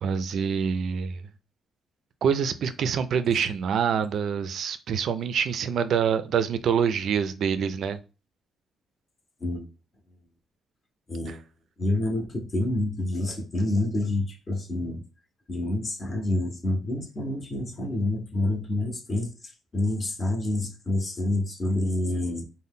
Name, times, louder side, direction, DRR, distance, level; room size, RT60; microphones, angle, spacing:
voice 1, 0.0-1.2 2.2-8.0 11.3-11.4, right 7 dB, 65° right, 0.3 m, -26 dB
voice 2, 11.1-11.4 11.8-15.0 15.5-22.4, left 1 dB, 35° left, 0.7 m, -28 dB
2.7 x 2.1 x 3.5 m
cardioid pair, 90°, 0 cm